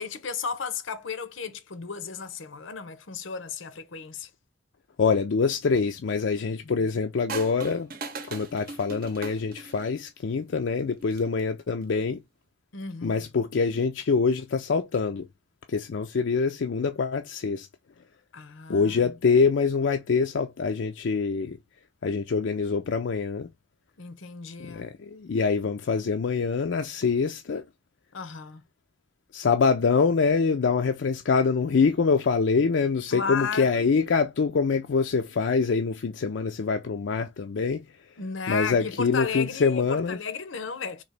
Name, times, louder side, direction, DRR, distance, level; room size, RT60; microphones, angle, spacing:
voice 1, 0.0-4.3 6.6-6.9 12.7-13.3 18.3-19.1 24.0-24.9 28.1-28.6 33.1-33.9 38.2-41.0, left 5 dB, 85° left, 0.8 m, -34 dB
voice 2, 5.0-7.9 8.3-12.2 13.0-15.3 15.7-17.7 18.7-21.6 22.0-23.5 24.6-27.6 29.3-37.8 38.5-40.2, left 5 dB, 65° left, 0.4 m, -25 dB
sound 1, 7.3-10.0 11.0-11.4, right 4 dB, 50° right, 0.7 m, -38 dB
3.9 x 2.9 x 3.2 m
head